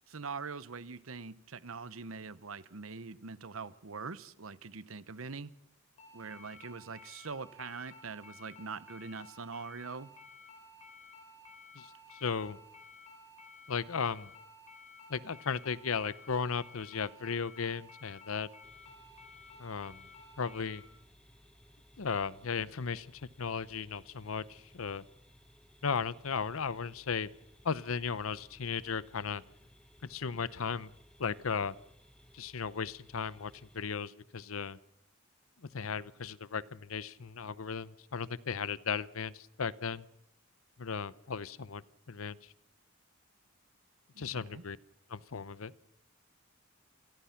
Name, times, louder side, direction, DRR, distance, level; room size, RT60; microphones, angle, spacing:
voice 1, 0.1-5.5 6.1-10.1 44.1-44.6, right 4 dB, 80° right, 1.0 m, -43 dB
sound 1, 6.0-20.8, left 2 dB, 35° left, 4.7 m, -54 dB
voice 2, 11.7-12.6 13.7-14.3 15.1-18.5 19.6-20.0 20.4-20.8 22.0-25.0 25.8-27.3 27.6-29.4 30.0-30.9 31.2-31.7 32.3-34.8 35.6-40.0 40.8-41.8 42.1-42.4 44.2-44.8 45.1-45.7, left 6 dB, 85° left, 0.8 m, -36 dB
sound 2, 18.6-33.8, equal, 5° left, 1.5 m, -61 dB
27.5 x 18.5 x 5.9 m
head